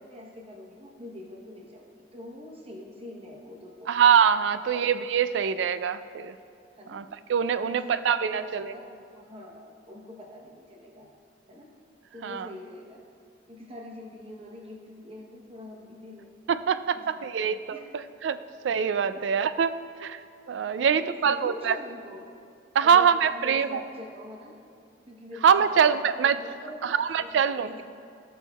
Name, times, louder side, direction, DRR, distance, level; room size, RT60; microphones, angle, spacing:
voice 1, 0.0-3.9 4.7-4.9 6.7-7.0 7.5-11.1 11.5-11.7 12.1-13.0 13.5-16.3 16.9-17.8 19.1-19.2 20.8-22.2 22.8-24.6 25.1-27.8, left 1 dB, 35° right, -1 dB, 0.9 m, -44 dB
voice 2, 3.9-6.3 6.9-7.0 7.3-8.7 12.2-12.5 16.5-18.4 18.6-20.2 20.5-21.8 22.7-23.8 25.4-26.4 26.8-27.8, right 7 dB, 80° right, 13 dB, 0.3 m, -24 dB
17.0 x 6.3 x 2.3 m, 2.4 s
head